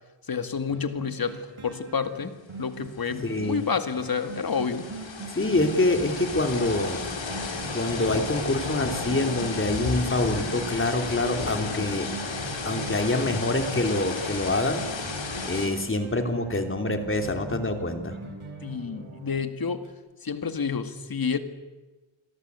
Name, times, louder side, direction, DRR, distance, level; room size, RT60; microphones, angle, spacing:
voice 1, 0.3-2.3 2.6-4.9 18.6-19.8 20.2-21.4, left 6 dB, 45° left, 9 dB, 2.1 m, -29 dB
sound 1, 0.7-19.4 19.8-19.9, right 5 dB, 80° right, 6.2 m, -43 dB
sound 2, 2.7-2.8 3.1-15.7, left 4 dB, 65° left, 4.8 m, -33 dB
voice 2, 3.2-3.7 5.3-7.0 7.7-12.1 12.6-14.8 15.4-18.2, left 2 dB, 25° left, 5 dB, 3.1 m, -26 dB
sound 3, 11.7-15.2 16.8-19.5, right 2 dB, 30° right, 8.0 m, -46 dB
29.0 x 22.5 x 8.3 m, 1.2 s
wide cardioid pair, 145°, 49 cm